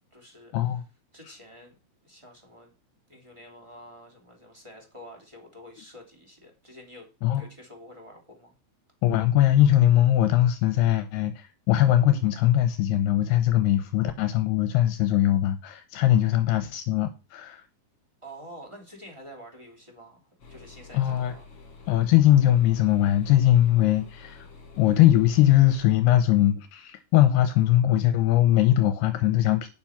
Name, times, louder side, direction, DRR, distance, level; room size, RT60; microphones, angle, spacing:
voice 1, 0.1-0.5 1.1-1.8 2.0-2.7 3.1-7.1 7.3-8.5 18.2-21.5, equal, 10° right, 1.8 m, -48 dB
voice 2, 9.0-17.6 20.9-21.3 21.9-24.5 24.8-29.7, left 13 dB, 80° left, 2.6 m, -21 dB
sound 1, 20.4-25.9, left 3 dB, 40° left, 2.7 m, -48 dB
9.1 x 6.0 x 5.7 m
omnidirectional pair, 5.0 m